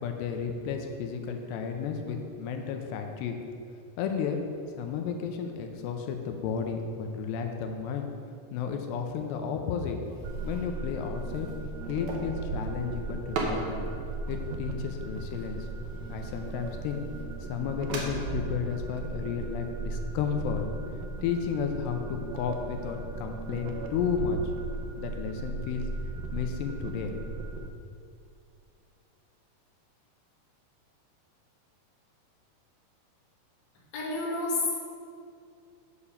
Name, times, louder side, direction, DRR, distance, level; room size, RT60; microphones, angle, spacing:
voice 1, 0.0-3.3 4.0-4.4 4.8-8.1 8.5-10.0 10.4-11.5 11.8-13.8 14.3-15.6 16.1-17.0 17.5-20.7 21.2-24.4 25.0-25.8 26.3-27.1, left 7 dB, 85° left, 4 dB, 2.8 m, -32 dB
sound 1, 9.8-18.1, right 3 dB, 70° right, 1.8 m, -41 dB
sound 2, 10.2-27.7, right 3 dB, 90° right, 2.0 m, -37 dB
voice 2, 33.9-34.7, left 3 dB, 45° left, -5 dB, 1.5 m, -29 dB
8.3 x 6.8 x 5.6 m, 2.4 s
omnidirectional pair, 4.9 m